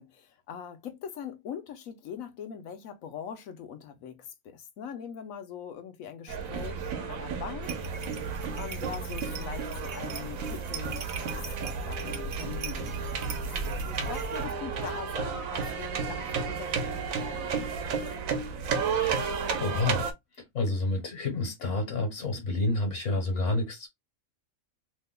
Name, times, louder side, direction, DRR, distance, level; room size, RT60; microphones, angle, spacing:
voice 1, 0.0-7.8 8.5-11.3 11.6-13.0 13.4-17.9, left 8 dB, 80° left, 1.1 m, -42 dB
sound 1, 6.3-20.1, right 5 dB, 80° right, 1.1 m, -33 dB
sound 2, 7.6-14.5, right 2 dB, 60° right, 1.0 m, -39 dB
voice 2, 19.6-20.1 20.5-23.9, left 2 dB, 65° left, 1.3 m, -29 dB
3.0 x 2.1 x 3.6 m
omnidirectional pair, 1.4 m